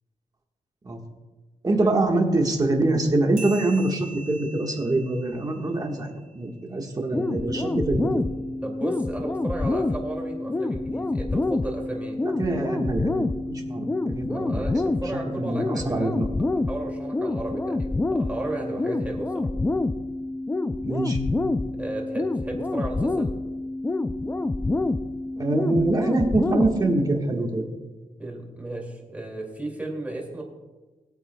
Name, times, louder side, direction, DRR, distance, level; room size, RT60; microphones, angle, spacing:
voice 1, 1.6-8.2 12.2-14.7 15.4-16.3 20.8-21.2 25.4-27.6, right 2 dB, 25° right, 1 dB, 1.5 m, -25 dB
sound 1, 3.4-6.4, right 4 dB, 65° right, 3.1 m, -43 dB
sound 2, 7.1-27.1, left 2 dB, 15° left, 0.3 m, -27 dB
voice 2, 8.6-12.2 14.3-16.1 16.7-19.5 21.8-23.3 28.2-30.4, right 2 dB, 10° right, -1 dB, 2.4 m, -34 dB
20.0 x 9.0 x 2.3 m, 1.2 s
wide cardioid pair, 145°, 15 cm